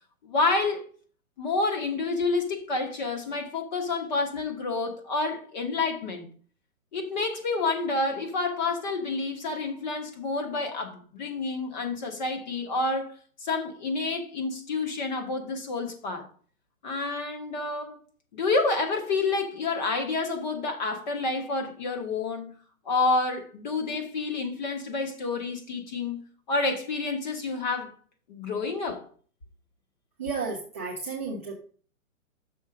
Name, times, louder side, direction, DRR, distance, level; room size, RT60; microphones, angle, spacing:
voice 1, 0.2-0.9 1.4-6.3 6.9-16.3 16.8-18.0 18.3-22.6 22.8-26.2 26.5-27.9 28.3-29.0, left 3 dB, 30° left, 1.2 m, -29 dB
voice 2, 30.2-31.5, right 4 dB, 10° right, 0.5 m, -32 dB
6.4 x 4.6 x 6.2 m
hypercardioid pair, 165°, 42 cm